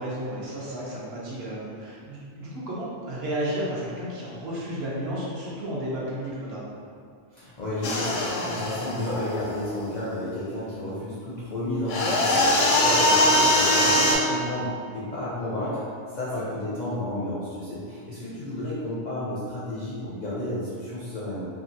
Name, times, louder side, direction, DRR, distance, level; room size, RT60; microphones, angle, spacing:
voice 1, 0.0-6.7 16.3-16.4, right 1 dB, 65° right, -6 dB, 0.8 m, -32 dB
voice 2, 7.3-15.8 16.1-21.5, left 1 dB, 55° left, -9 dB, 0.5 m, -32 dB
sound 1, 7.8-9.9 11.9-14.2, left 1 dB, 90° left, 0.9 m, -22 dB
2.8 x 2.2 x 2.6 m, 2.2 s
omnidirectional pair, 1.2 m